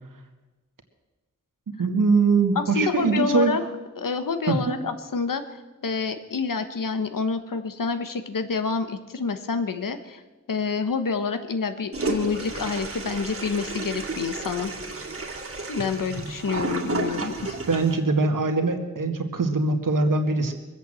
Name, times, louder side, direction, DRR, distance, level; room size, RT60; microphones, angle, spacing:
voice 1, 1.8-3.6 4.5-4.8 17.7-20.5, right 3 dB, 75° right, 5 dB, 2.0 m, -22 dB
voice 2, 2.5-3.6 4.0-10.2 10.5-14.7 15.7-17.6, left 5 dB, 85° left, 9 dB, 1.3 m, -28 dB
Toilet flush, 11.9-18.0, right 3 dB, 45° right, 2.2 m, -32 dB
22.0 x 8.3 x 7.8 m, 1.2 s
wide cardioid pair, 110°, 32 cm